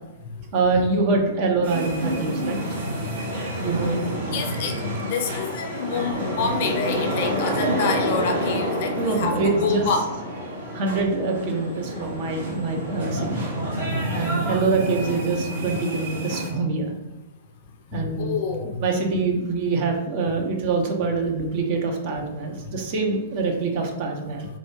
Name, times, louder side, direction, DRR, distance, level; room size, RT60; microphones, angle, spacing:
voice 1, 0.5-2.6 3.6-4.0 7.6-7.8 9.0-10.1 10.7-13.4 14.1-16.9 17.9-18.4 18.8-24.5, right 3 dB, 45° right, 1 dB, 0.7 m, -25 dB
sound 1, 1.6-16.5, equal, 65° right, 1.2 m, -28 dB
voice 2, 4.3-10.1 17.9-18.8, left 4 dB, 50° left, 4 dB, 0.5 m, -27 dB
4.0 x 2.4 x 3.0 m, 1.0 s
figure-of-eight pair, 105°, 0 cm